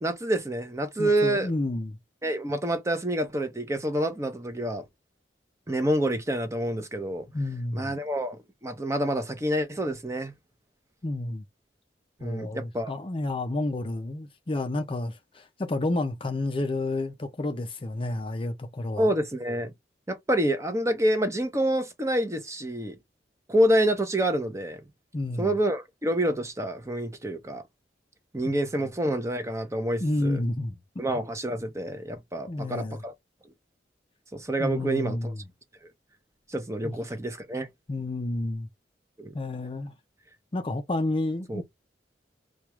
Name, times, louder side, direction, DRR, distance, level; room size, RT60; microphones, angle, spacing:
voice 1, 0.0-1.5 2.2-4.8 5.7-7.2 7.7-10.3 12.2-12.9 19.0-19.7 20.1-23.0 23.5-24.8 25.4-27.6 28.3-30.4 31.0-33.1 34.3-35.3 36.5-37.7 39.2-39.3 41.5-41.6, right 1 dB, 15° right, 0.7 m, -27 dB
voice 2, 1.0-2.0 7.3-7.9 11.0-11.4 12.2-19.1 25.1-25.6 28.5-28.6 30.0-30.8 32.5-33.0 34.6-35.4 36.8-37.0 37.9-38.7 39.3-39.9 40.5-41.6, left 2 dB, 30° left, 0.5 m, -30 dB
4.5 x 2.3 x 3.0 m
head